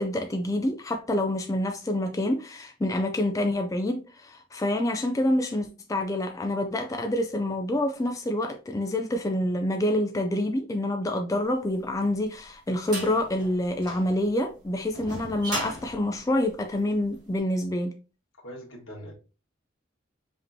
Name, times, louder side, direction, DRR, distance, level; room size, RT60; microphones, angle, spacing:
voice 1, 0.0-17.9, left 1 dB, 15° left, 0.3 m, -27 dB
sound 1, 11.8-17.2, right 1 dB, 20° right, 1.7 m, -37 dB
voice 2, 18.4-19.1, equal, 85° left, 1.6 m, -41 dB
5.1 x 3.0 x 2.7 m
head